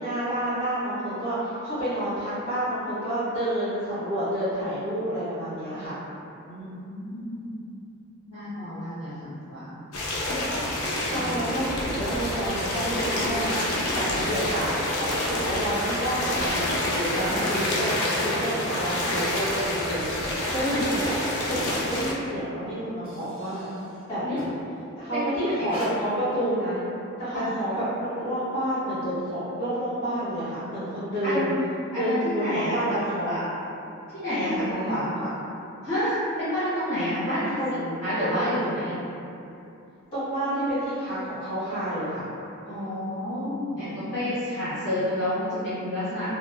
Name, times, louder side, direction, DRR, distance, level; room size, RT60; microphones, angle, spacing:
voice 1, 0.0-5.9 11.1-13.5 13.9-21.2 21.5-23.7 24.1-24.2 25.0-26.8 27.2-31.5 31.9-33.3 34.4-35.3 37.3-37.8 40.1-42.2, right 1 dB, 25° left, -14 dB, 1.4 m, -29 dB
voice 2, 6.5-7.5 8.3-9.8 11.1-11.4 17.3-17.5 20.6-20.7 24.2-24.4 25.1-25.7 27.3-27.5 31.2-33.5 34.1-35.1 35.8-39.0 42.6-46.3, left 1 dB, 45° left, -16 dB, 0.8 m, -29 dB
sound 1, 9.9-22.1, left 1 dB, 75° left, 0.4 m, -28 dB
sound 2, 10.5-10.9 11.6-15.0 15.3-15.4 16.1-16.2 16.7-19.3 20.5-24.7 25.6-25.9, equal, 25° right, 0.5 m, -46 dB
2.7 x 2.0 x 2.3 m, 2.7 s
head